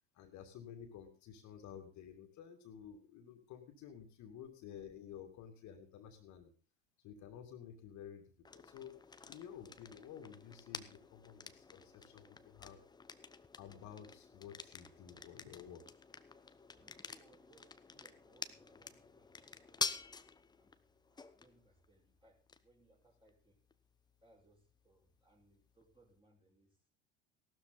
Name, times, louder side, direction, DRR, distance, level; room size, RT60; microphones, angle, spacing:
voice 1, 0.1-6.5 7.0-8.2 8.5-9.0 9.3-12.8 13.6-16.0, left 8 dB, 50° left, 5 dB, 2.4 m, -52 dB
sound 1, 8.4-26.2, left 4 dB, 10° left, 0.8 m, -49 dB
voice 2, 16.7-19.9 20.6-23.6 24.2-26.8, right 2 dB, 15° right, -1 dB, 5.1 m, -69 dB
15.5 x 12.5 x 4.1 m, 0.35 s
hypercardioid pair, 80°, 36 cm